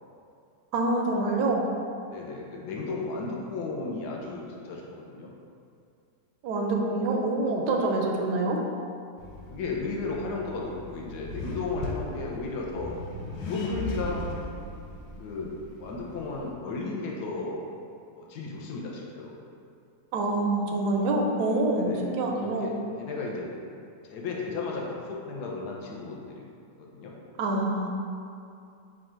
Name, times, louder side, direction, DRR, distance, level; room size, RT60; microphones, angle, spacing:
voice 1, 0.7-1.7 6.4-8.6 20.1-22.7 27.4-27.9, right 2 dB, 75° right, 0 dB, 1.1 m, -26 dB
voice 2, 2.1-5.3 9.5-12.9 13.4-14.3 15.2-15.5 15.8-17.6 18.1-19.3 21.7-23.5 24.0-27.1, left 3 dB, 70° left, -2 dB, 1.2 m, -34 dB
Accelerating revving vroom, 9.2-16.5, left 1 dB, 85° left, 1.3 m, -38 dB
4.8 x 2.4 x 4.3 m, 2.5 s
omnidirectional pair, 2.0 m